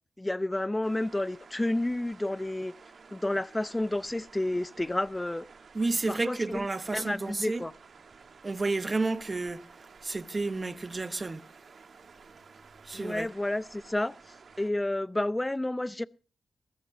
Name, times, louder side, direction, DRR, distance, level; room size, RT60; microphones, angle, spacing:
voice 1, 0.2-2.7 3.1-5.5 6.1-6.7 6.9-7.7 12.9-14.2 14.6-16.0, left 1 dB, 20° left, 0.7 m, -30 dB
sound 1, 0.8-14.7, right 5 dB, 65° right, 1.3 m, -53 dB
voice 2, 5.7-7.6 8.4-9.6 10.0-11.4 12.9-13.3, right 3 dB, 40° right, 1.0 m, -31 dB
23.0 x 14.5 x 2.7 m
supercardioid pair, 45°, 0 cm